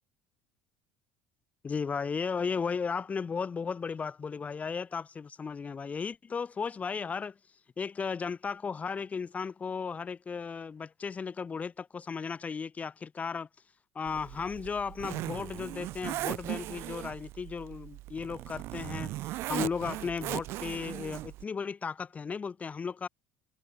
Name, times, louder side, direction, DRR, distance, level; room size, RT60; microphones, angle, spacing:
voice 1, 1.6-7.3 7.8-13.5 14.0-23.1, left 5 dB, 30° left, 3.6 m, -35 dB
Zipper (clothing), 14.1-21.4, right 17 dB, 65° right, 1.1 m, -38 dB
hypercardioid pair, 70°, 5 cm